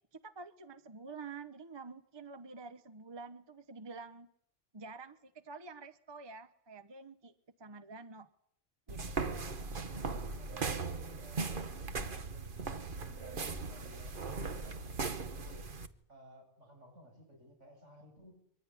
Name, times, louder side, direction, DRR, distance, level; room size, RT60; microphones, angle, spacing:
voice 1, 0.1-4.3 4.7-7.3 7.6-8.3 8.9-9.8, right 4 dB, 25° right, 12 dB, 1.0 m, -48 dB
sound 1, 8.9-15.9, right 4 dB, 45° right, 1.4 m, -38 dB
voice 2, 10.4-15.7 16.1-18.4, equal, 75° right, 2 dB, 8.5 m, -58 dB
24.0 x 16.5 x 10.0 m, 0.69 s
omnidirectional pair, 1.2 m